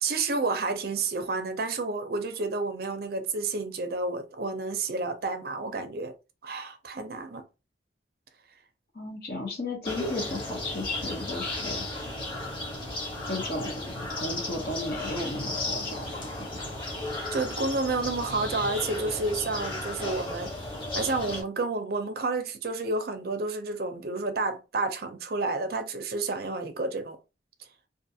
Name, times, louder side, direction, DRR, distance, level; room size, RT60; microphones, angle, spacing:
voice 1, 0.0-6.1 6.4-7.5 17.3-20.5 20.9-27.2, right 3 dB, 55° right, 0.5 m, -30 dB
voice 2, 8.9-11.8 13.3-16.6, left 2 dB, 55° left, 0.7 m, -34 dB
sound 1, 9.8-21.4, left 1 dB, 25° left, 0.9 m, -34 dB
2.5 x 2.4 x 2.7 m
head